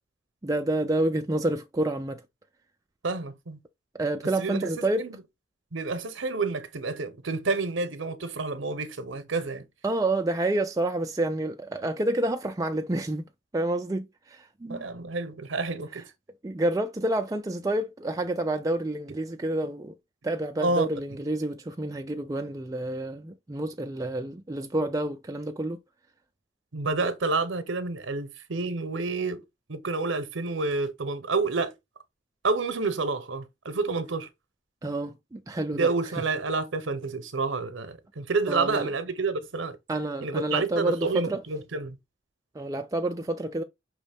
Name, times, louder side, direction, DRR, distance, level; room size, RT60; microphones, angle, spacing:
voice 1, 0.4-2.2 4.0-5.1 9.8-14.8 16.4-19.9 20.2-25.8 34.8-35.9 36.2-36.3 38.5-38.9 39.9-41.4 42.5-43.6, right 1 dB, 15° right, 0.3 m, -29 dB
voice 2, 3.0-3.6 4.4-5.2 5.7-9.7 14.7-16.0 20.6-20.9 26.7-29.4 29.7-31.7 32.4-34.3 35.7-39.8 40.2-42.0, right 3 dB, 70° right, 0.8 m, -29 dB
5.2 x 3.0 x 3.4 m
head